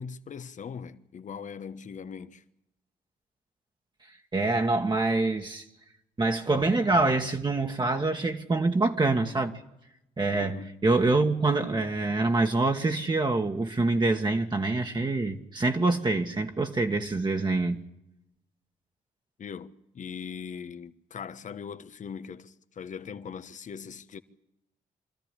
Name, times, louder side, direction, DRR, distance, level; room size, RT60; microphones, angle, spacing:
voice 1, 0.0-2.4 10.3-10.8 19.4-24.2, left 6 dB, 55° left, 1.2 m, -40 dB
voice 2, 4.3-5.6 6.2-9.6 10.2-17.8, right 3 dB, 30° right, 1.7 m, -25 dB
25.0 x 13.5 x 9.9 m
supercardioid pair, 60°, 15 cm